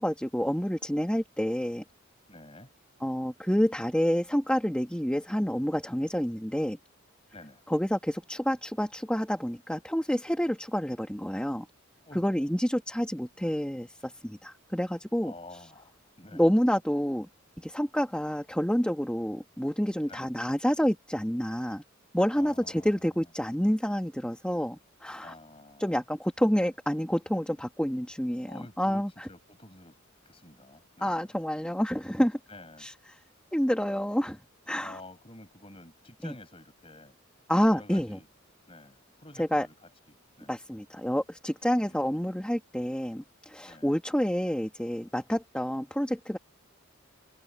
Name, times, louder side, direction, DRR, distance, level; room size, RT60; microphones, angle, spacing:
voice 1, 0.0-1.8 3.0-6.8 7.7-11.7 12.1-15.3 16.3-17.3 17.6-21.8 22.1-25.3 25.8-28.5 28.8-29.1 31.0-32.4 32.8-32.9 33.5-34.4 34.7-35.0 36.2-36.3 37.5-38.2 39.4-39.7 40.5-46.4, equal, 5° left, 2.2 m, -28 dB
voice 2, 2.3-2.7 7.3-7.6 12.1-12.4 15.2-16.5 20.1-20.3 22.3-23.2 25.2-26.0 28.5-30.0 30.2-31.3 32.5-32.9 34.8-37.2 37.7-38.3 38.7-40.6 41.7-42.4 43.6-43.9, left 2 dB, 25° left, 7.5 m, -50 dB
head